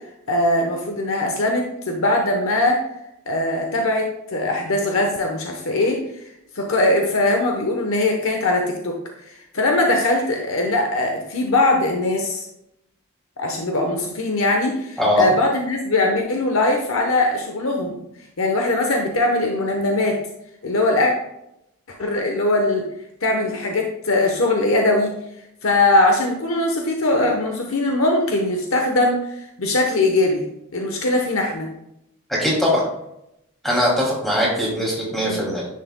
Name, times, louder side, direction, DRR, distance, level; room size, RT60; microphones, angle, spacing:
voice 1, 0.3-2.8 3.3-6.0 6.5-9.0 9.5-12.5 13.4-18.0 18.4-20.2 20.6-21.1 22.0-22.8 23.2-25.1 25.6-30.4 30.7-31.7 35.2-35.4, left 2 dB, 65° left, 2 dB, 1.0 m, -20 dB
voice 2, 32.4-32.8 33.6-35.7, equal, ahead, -5 dB, 2.5 m, -20 dB
10.0 x 6.6 x 2.2 m, 0.82 s
head